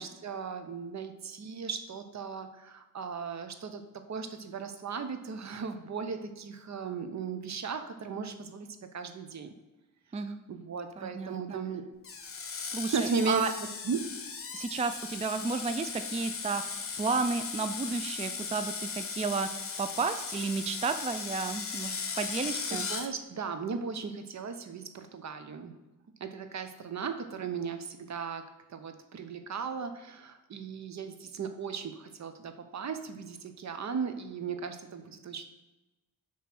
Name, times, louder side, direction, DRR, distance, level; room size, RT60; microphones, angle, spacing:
voice 1, 0.0-3.8 4.1-8.7 8.9-9.5 10.5-11.8 12.9-13.4 13.8-14.0 22.7-25.7 26.2-28.4 28.7-35.4, right 5 dB, 55° right, 8 dB, 0.8 m, -36 dB
voice 2, 11.0-11.6 12.7-13.5 14.5-19.5 19.8-22.9, right 4 dB, 20° right, 9 dB, 0.4 m, -32 dB
Screech, 12.0-23.1, left 5 dB, 45° left, 0.9 m, -37 dB
7.0 x 3.2 x 6.0 m, 1.0 s
cardioid pair, 75°, 32 cm